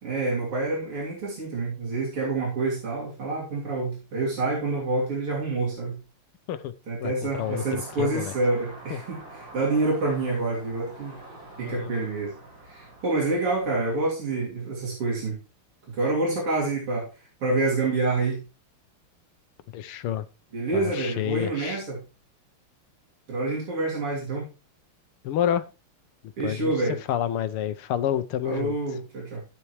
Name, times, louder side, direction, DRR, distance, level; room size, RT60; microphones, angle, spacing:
voice 1, 0.0-6.0 6.9-11.2 11.6-12.3 12.6-15.4 15.9-18.4 20.5-22.0 23.3-24.5 26.4-27.0 28.4-29.4, right 3 dB, 85° right, 4.0 m, -27 dB
voice 2, 7.0-8.3 8.9-9.0 11.6-11.9 19.7-20.3 20.7-21.8 25.2-25.7 26.4-26.7 27.1-28.8, left 10 dB, 80° left, 1.7 m, -29 dB
sound 1, 7.3-14.0, right 2 dB, 55° right, 5.5 m, -45 dB
12.0 x 9.6 x 3.1 m
omnidirectional pair, 2.4 m